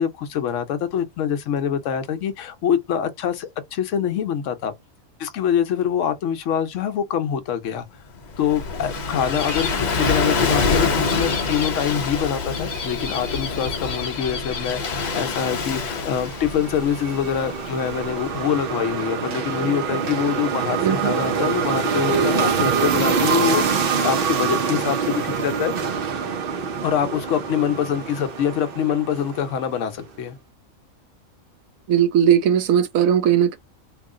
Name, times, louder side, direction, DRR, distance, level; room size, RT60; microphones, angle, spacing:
voice 1, 0.0-4.7 5.2-7.9 8.4-23.6 24.0-25.7 26.8-30.4, left 8 dB, 70° left, 0.9 m, -25 dB
Gull seagull / Waves surf, 8.1-18.7, left 4 dB, 40° left, 0.7 m, -26 dB
sound 1, 15.5-29.8, right 6 dB, 55° right, 0.7 m, -25 dB
voice 2, 20.8-21.1 31.9-33.6, right 9 dB, 80° right, 1.0 m, -18 dB
3.0 x 2.4 x 3.7 m
omnidirectional pair, 1.4 m